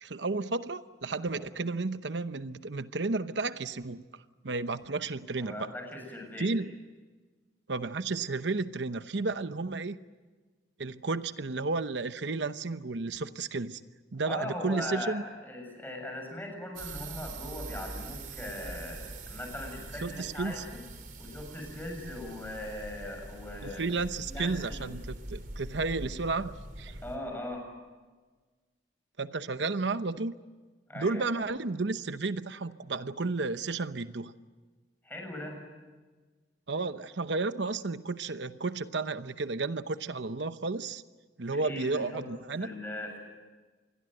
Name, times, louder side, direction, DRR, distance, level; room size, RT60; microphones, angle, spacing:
voice 1, 0.0-4.0 4.4-5.7 6.4-6.8 7.7-10.0 10.8-13.8 14.1-15.2 20.0-20.6 23.6-27.0 29.2-30.4 30.9-34.3 36.7-41.0 41.4-42.7, right 3 dB, 80° right, 12 dB, 0.9 m, -32 dB
voice 2, 5.4-6.5 14.3-20.8 21.2-24.0 24.3-24.9 27.0-27.7 30.9-31.5 35.0-35.7 41.4-42.3 42.6-43.2, left 1 dB, 10° left, 2 dB, 7.3 m, -40 dB
sound 1, 16.8-27.2, right 2 dB, 50° right, 3.9 m, -43 dB
27.0 x 21.5 x 7.9 m, 1.3 s
head